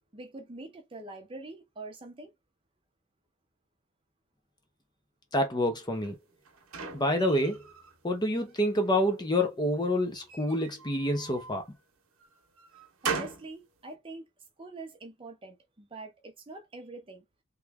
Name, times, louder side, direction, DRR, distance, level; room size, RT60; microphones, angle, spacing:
voice 1, 0.1-2.3 13.0-14.2 14.6-17.2, right 2 dB, 25° right, 0.6 m, -44 dB
voice 2, 5.3-6.2 6.9-7.6 8.0-11.6, left 1 dB, 20° left, 0.5 m, -27 dB
sound 1, 6.0-8.0 8.4-9.2 10.1-11.6 12.2-13.5, right 5 dB, 70° right, 0.9 m, -39 dB
3.0 x 2.3 x 3.4 m
head